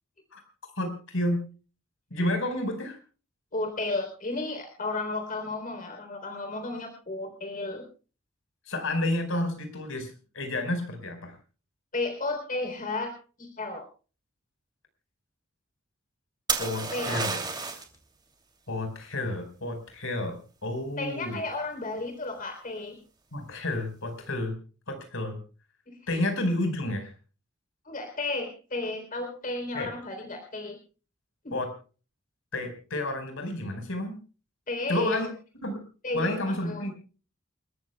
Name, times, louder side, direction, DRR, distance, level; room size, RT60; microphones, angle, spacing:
voice 1, 0.8-1.5 2.1-3.0 8.7-11.3 16.6-17.4 18.7-21.4 23.3-24.6 24.9-25.4 26.1-27.1 29.7-29.9 31.5-31.7 32.5-34.2 34.9-35.3 35.6-35.8 36.1-36.9, left 1 dB, 70° left, 6 dB, 4.9 m, -30 dB
voice 2, 3.5-7.9 11.9-13.8 16.9-17.3 21.0-23.0 25.9-26.0 27.9-30.8 31.4-31.6 34.7-35.3 36.0-36.8, left 2 dB, 40° left, 5 dB, 3.5 m, -33 dB
sound 1, 16.5-18.0 21.6-22.1, right 4 dB, 20° right, 2.8 m, -30 dB
29.0 x 14.0 x 2.3 m, 0.36 s
head